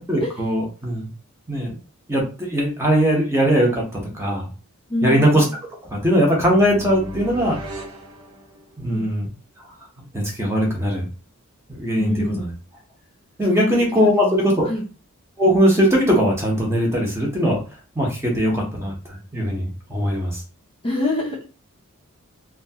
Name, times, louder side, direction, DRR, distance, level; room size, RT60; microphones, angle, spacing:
voice 1, 0.1-1.1 1.5-1.8 2.1-3.8 4.2-4.5 5.0-5.4 6.0-7.6 8.8-9.3 10.1-11.1 11.7-12.5 13.4-14.7 15.4-17.6 18.0-18.9 19.3-20.4, equal, 10° right, -2 dB, 0.8 m, -20 dB
voice 2, 4.9-5.4 8.9-9.1 12.0-12.5 13.5-13.8 14.2-14.4 14.6-14.8 20.8-21.5, left 1 dB, 25° left, -2 dB, 0.5 m, -25 dB
sound 1, 5.9-9.0, equal, 85° right, 0.9 m, -36 dB
2.8 x 2.3 x 2.7 m, 0.34 s
head